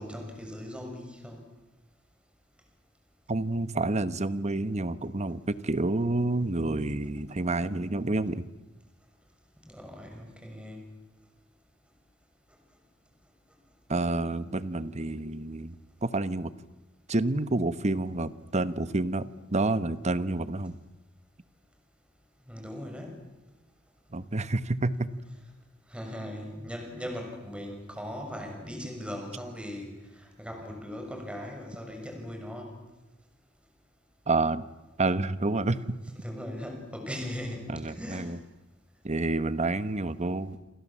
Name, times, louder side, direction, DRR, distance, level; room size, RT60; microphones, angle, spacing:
voice 1, 0.0-1.4 9.6-10.8 22.5-23.1 25.9-29.9 30.2-32.7 36.1-38.3 40.4-40.5, equal, 5° right, 3 dB, 6.4 m, -39 dB
voice 2, 3.3-8.5 13.9-15.7 16.0-16.5 17.1-20.8 24.1-25.1 34.3-34.6 35.0-36.0 37.7-38.4 39.0-40.6, right 2 dB, 35° right, 14 dB, 1.1 m, -29 dB
28.0 x 27.5 x 7.4 m, 1.0 s
head